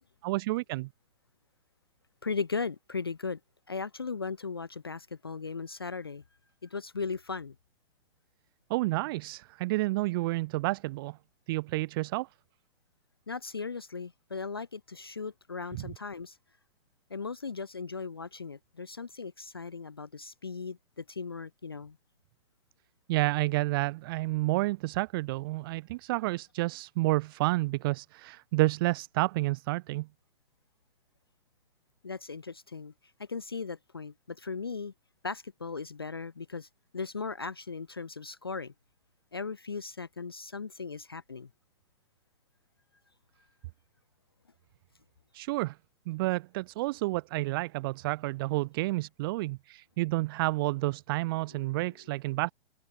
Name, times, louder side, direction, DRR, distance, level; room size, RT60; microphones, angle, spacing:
voice 1, 0.2-0.9 8.7-11.2 11.5-12.3 15.7-15.9 23.1-30.1 45.3-45.8 46.1-52.5, right 21 dB, 20° right, 0.8 m, -30 dB
voice 2, 2.2-3.4 3.7-6.2 6.6-7.6 13.3-16.4 17.1-22.0 32.0-32.9 33.2-34.9 35.2-36.7 36.9-38.7 39.3-41.5 51.5-51.8, left 4 dB, 25° left, 0.3 m, -37 dB
open air
figure-of-eight pair, 130°, 33 cm